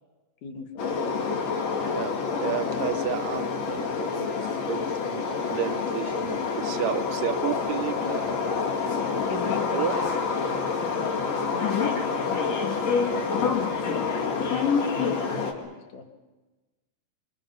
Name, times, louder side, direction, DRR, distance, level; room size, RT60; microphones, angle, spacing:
voice 1, 0.4-0.9 3.2-4.7 6.5-6.7 9.3-10.3 10.6-12.8 13.6-16.1, left 5 dB, 75° left, 4 dB, 3.4 m, -40 dB
sound 1, 0.8-15.5, left 5 dB, 55° left, 3.5 m, -27 dB
voice 2, 2.4-4.3 4.7-8.2 9.7-10.0 11.7-11.8 13.1-13.2, right 11 dB, 85° right, 12 dB, 2.5 m, -32 dB
26.5 x 25.5 x 5.6 m, 1.2 s
omnidirectional pair, 3.8 m